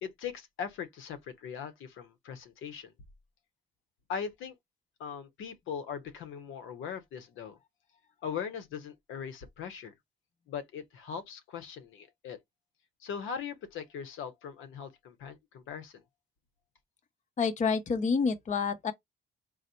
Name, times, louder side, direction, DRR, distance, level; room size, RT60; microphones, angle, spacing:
voice 1, 0.0-2.9 4.1-4.6 5.0-7.6 8.2-9.9 10.5-12.4 13.0-16.0, left 7 dB, 85° left, 0.9 m, -40 dB
voice 2, 17.4-18.9, left 5 dB, 35° left, 0.7 m, -28 dB
4.0 x 2.1 x 4.2 m
cardioid pair, 90°, 20 cm